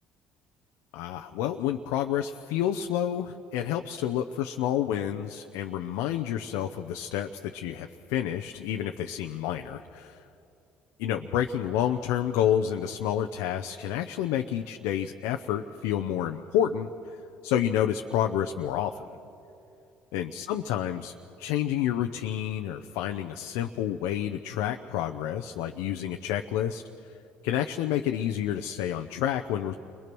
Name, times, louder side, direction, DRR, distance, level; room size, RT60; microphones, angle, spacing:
voice 1, 0.9-10.2 11.0-16.9 17.4-19.1 20.1-26.8 27.4-29.7, left 10 dB, 80° left, 5 dB, 0.7 m, -29 dB
29.5 x 22.0 x 6.1 m, 2.8 s
supercardioid pair, 65°, 5 cm